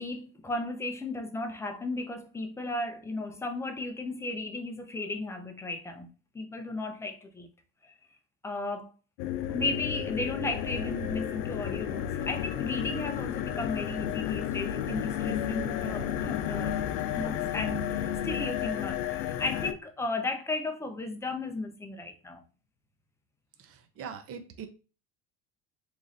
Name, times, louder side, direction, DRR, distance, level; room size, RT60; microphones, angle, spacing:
voice 1, 0.0-7.5 7.8-7.9 8.4-8.9 9.5-16.8 17.1-22.4, left 2 dB, 10° left, 0.4 m, -35 dB
sound 1, 9.2-19.7, left 10 dB, 90° left, 0.5 m, -32 dB
voice 2, 23.6-24.7, right 7 dB, 45° right, 0.7 m, -42 dB
3.1 x 2.5 x 3.9 m
cardioid pair, 130°, 33 cm